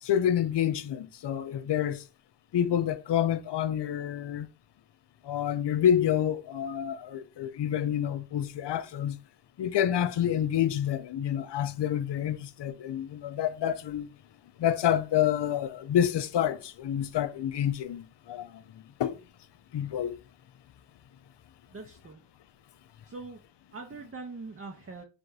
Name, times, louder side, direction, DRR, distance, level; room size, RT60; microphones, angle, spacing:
voice 1, 0.0-2.0 2.5-4.5 5.2-9.2 9.6-14.1 14.6-18.6 19.0-19.2 19.7-20.2, left 10 dB, 65° left, 0.5 m, -28 dB
voice 2, 21.7-22.2 23.0-23.4 23.7-25.0, right 3 dB, 30° right, 0.6 m, -42 dB
3.4 x 2.6 x 4.6 m
wide cardioid pair, 60°, 44 cm